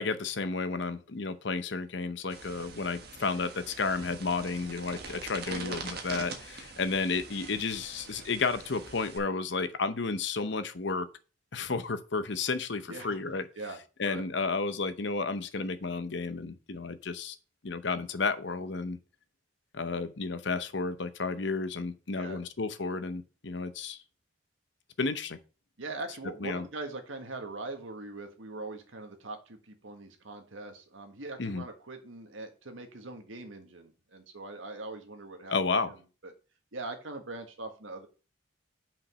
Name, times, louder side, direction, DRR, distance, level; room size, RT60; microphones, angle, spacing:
voice 1, 0.0-11.1 11.5-13.4 14.0-17.3 17.6-19.0 19.7-24.0 25.0-25.4 26.4-26.6 31.4-31.6 35.5-35.9, left 4 dB, 65° left, 0.8 m, -32 dB
sound 1, 2.3-9.2, right 4 dB, 50° right, 1.4 m, -44 dB
voice 2, 5.5-6.0 12.9-13.2 13.5-13.8 14.1-14.2 22.1-22.4 25.8-35.5 35.8-36.3 36.7-38.1, right 2 dB, 85° right, 1.6 m, -41 dB
5.9 x 5.2 x 6.3 m
head